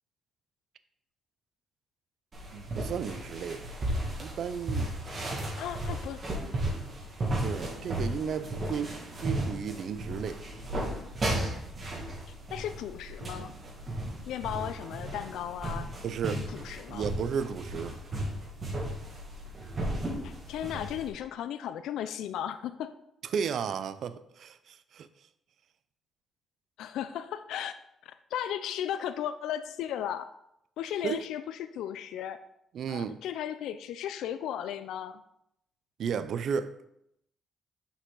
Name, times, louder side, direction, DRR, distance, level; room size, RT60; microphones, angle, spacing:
sound 1, 2.3-21.1, right 1 dB, 40° right, 2.0 m, -35 dB
voice 1, 2.5-3.7 4.2-4.9 7.4-10.4 16.0-16.5 16.9-18.0 23.3-25.1 31.0-31.2 32.7-33.2 36.0-36.7, right 7 dB, 65° right, 13 dB, 0.4 m, -34 dB
voice 2, 5.6-6.2 12.5-13.5 14.3-15.9 16.3-17.1 20.2-22.9 26.8-27.8 28.0-30.3 30.8-32.4 32.9-35.2, left 10 dB, 85° left, 11 dB, 0.3 m, -36 dB
6.1 x 5.5 x 3.8 m, 0.78 s
cardioid pair, 90°, 0 cm